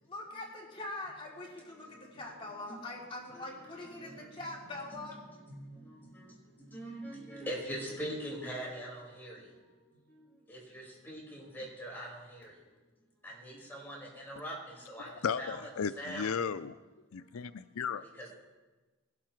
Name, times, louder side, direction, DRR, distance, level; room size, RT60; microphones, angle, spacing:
voice 1, 0.0-5.2, left 2 dB, 25° left, -2 dB, 3.2 m, -43 dB
voice 2, 1.7-2.2 2.7-2.8 3.3-3.4 3.7-4.4 5.5-12.5 13.2-15.7 16.0-16.3 17.2-17.3 18.2-18.3, right 1 dB, 10° left, -3 dB, 5.3 m, -43 dB
voice 3, 15.1-16.8 17.1-18.0, left 6 dB, 85° left, 13 dB, 0.5 m, -35 dB
22.0 x 12.5 x 4.5 m, 1.2 s
head